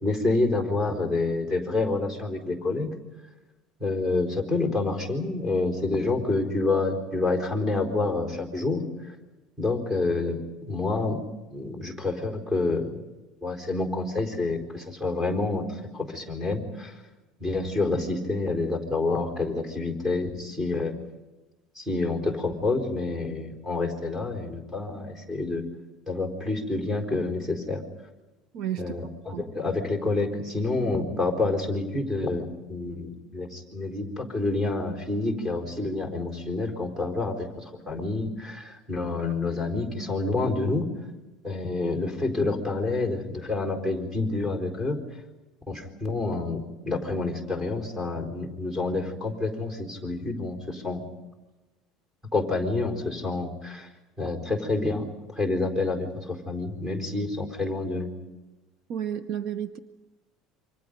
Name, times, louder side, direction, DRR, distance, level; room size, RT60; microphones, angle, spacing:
voice 1, 0.0-2.9 3.8-8.8 9.6-10.4 10.7-11.2 11.5-13.0 13.4-16.9 17.4-20.9 21.8-25.6 26.1-27.8 28.8-40.8 41.4-45.0 45.7-51.0 52.3-53.9 54.2-55.1 55.4-58.1, left 3 dB, 10° right, -1 dB, 4.4 m, -28 dB
voice 2, 28.5-28.9 29.3-29.4 58.9-59.8, right 10 dB, 50° right, 10 dB, 0.9 m, -31 dB
28.5 x 25.5 x 5.4 m, 1.1 s
cardioid pair, 155°, 0 cm